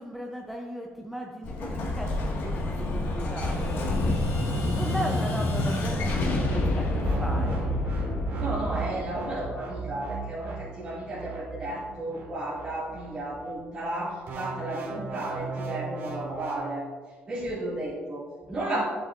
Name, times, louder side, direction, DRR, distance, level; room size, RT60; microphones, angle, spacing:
voice 1, 0.0-7.7, right 1 dB, 5° right, 0 dB, 0.5 m, -37 dB
Explosion, 1.4-10.1, left 2 dB, 60° left, 1.6 m, -28 dB
sound 1, 7.0-13.5 14.3-16.6, right 5 dB, 55° right, 1.9 m, -36 dB
voice 2, 8.4-16.8 17.3-18.8, right 1 dB, 25° right, -9 dB, 1.8 m, -33 dB
11.0 x 8.0 x 2.4 m, 1.5 s
cardioid pair, 175°, 4 cm